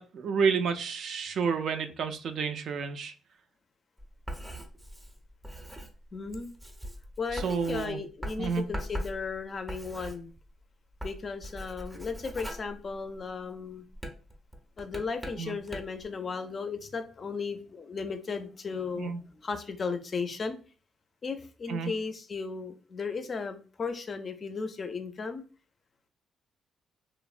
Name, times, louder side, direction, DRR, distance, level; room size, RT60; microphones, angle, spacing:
voice 1, 0.0-3.1 7.3-8.0 8.4-8.6 15.4-15.6 19.0-19.2 21.7-21.9, right 6 dB, 65° right, 7 dB, 0.3 m, -30 dB
Writing, 4.0-10.6 10.9-13.4 13.9-16.1, equal, 10° right, 0.5 m, -41 dB
voice 2, 6.1-6.5 7.2-10.3 11.0-13.8 14.8-20.6 21.2-25.4, left 4 dB, 40° left, 8 dB, 0.4 m, -35 dB
2.8 x 2.0 x 2.4 m, 0.37 s
cardioid pair, 90°, 0 cm